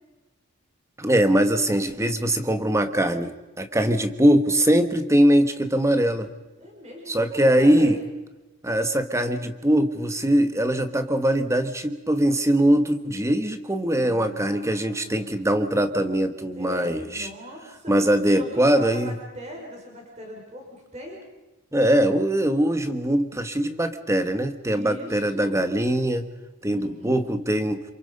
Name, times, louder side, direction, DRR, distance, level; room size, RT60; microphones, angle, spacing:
voice 1, 1.0-6.3 7.1-8.0 8.6-17.3 17.9-19.1 21.7-26.2 26.6-27.8, right 1 dB, 15° right, 8 dB, 1.4 m, -22 dB
voice 2, 6.6-8.0 13.9-15.5 16.5-17.9 18.2-21.2 24.6-25.6 26.6-27.3, equal, 30° right, 0 dB, 5.9 m, -40 dB
28.0 x 26.5 x 5.5 m, 1.1 s
head